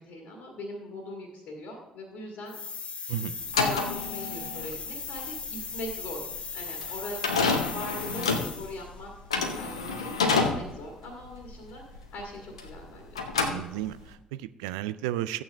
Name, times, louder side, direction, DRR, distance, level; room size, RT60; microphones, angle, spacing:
voice 1, 0.0-2.6 3.4-9.1 9.4-10.2 10.5-13.2, left 1 dB, 65° left, 1 dB, 1.8 m, -40 dB
sound 1, 2.5-8.9, left 5 dB, 35° left, 0.9 m, -38 dB
sound 2, 3.4-12.9 13.1-14.1, left 4 dB, 90° left, 0.8 m, -29 dB
voice 2, 13.4-15.4, right 13 dB, 75° right, 15 dB, 0.4 m, -33 dB
13.5 x 8.6 x 3.4 m, 0.96 s
figure-of-eight pair, 45°, 3 cm